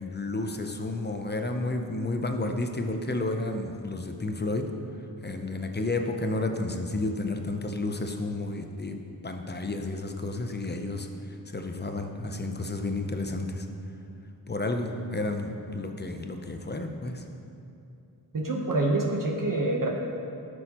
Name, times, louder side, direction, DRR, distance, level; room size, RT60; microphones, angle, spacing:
voice 1, 0.0-4.7 5.2-13.6 14.5-17.2, left 2 dB, 25° left, 4 dB, 0.6 m, -31 dB
voice 2, 18.3-19.9, right 2 dB, 50° right, -1 dB, 1.0 m, -26 dB
12.0 x 6.3 x 2.9 m, 2.6 s
wide cardioid pair, 85°, 41 cm